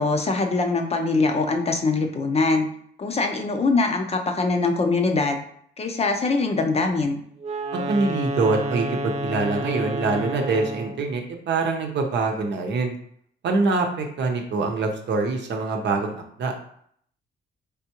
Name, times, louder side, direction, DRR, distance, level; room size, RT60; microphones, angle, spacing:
voice 1, 0.0-2.7 3.0-5.4 5.8-7.2, left 3 dB, 30° left, 4 dB, 0.6 m, -23 dB
Wind instrument woodwind instrument, 7.4-11.1, right 1 dB, 35° right, 0.4 m, -30 dB
voice 2, 7.7-13.0 13.4-16.5, right 3 dB, 65° right, 3 dB, 0.8 m, -24 dB
3.7 x 3.4 x 2.9 m, 0.65 s
cardioid pair, 90°, 20 cm